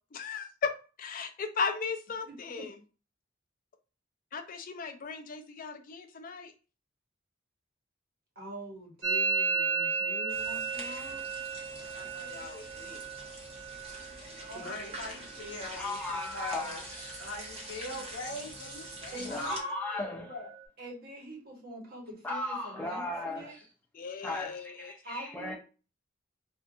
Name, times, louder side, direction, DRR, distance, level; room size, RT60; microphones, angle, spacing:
voice 1, 0.1-0.7 1.0-2.7 4.3-6.5 11.9-13.0 23.9-24.9, left 5 dB, 45° left, 0.4 m, -37 dB
voice 2, 2.2-2.6 8.3-11.2 13.7-13.8 14.4-15.0 19.1-19.7 20.8-23.6 25.0-25.5, right 1 dB, 55° right, 1.0 m, -45 dB
Musical instrument, 9.0-16.7 16.9-17.5 17.8-18.4 18.6-20.6, right 5 dB, 80° right, 0.8 m, -36 dB
sound 1, 10.3-19.6, right 1 dB, 35° right, 0.7 m, -46 dB
voice 3, 14.5-16.8 17.2-20.0 20.3-20.5, left 2 dB, 70° left, 0.9 m, -41 dB
voice 4, 15.7-17.3 19.2-20.3 22.2-23.6 24.2-25.5, left 1 dB, 10° left, 0.7 m, -37 dB
2.6 x 2.3 x 2.6 m
head